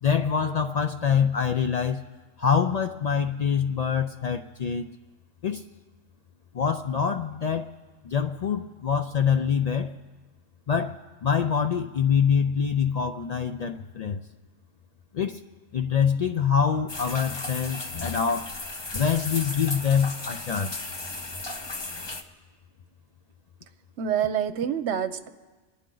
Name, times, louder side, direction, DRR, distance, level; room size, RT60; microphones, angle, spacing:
voice 1, 0.0-2.0 2.4-4.9 5.4-5.6 6.5-7.7 8.0-9.9 10.7-14.2 15.1-15.4 15.7-18.5 18.9-20.9, left 7 dB, 85° left, 6 dB, 0.3 m, -25 dB
sound 1, 16.9-22.2, left 2 dB, 25° left, 0.7 m, -35 dB
voice 2, 24.0-25.3, right 9 dB, 65° right, 10 dB, 1.0 m, -27 dB
27.5 x 10.0 x 3.8 m, 1.3 s
omnidirectional pair, 1.3 m